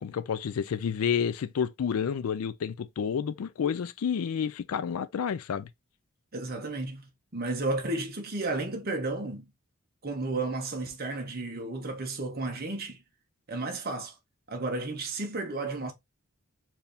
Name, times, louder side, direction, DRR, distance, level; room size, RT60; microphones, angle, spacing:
voice 1, 0.0-5.7, left 7 dB, 80° left, 0.4 m, -30 dB
voice 2, 6.3-9.5 10.0-13.0 13.5-14.1 14.5-15.9, right 2 dB, 45° right, 1.1 m, -33 dB
4.5 x 2.8 x 3.4 m
head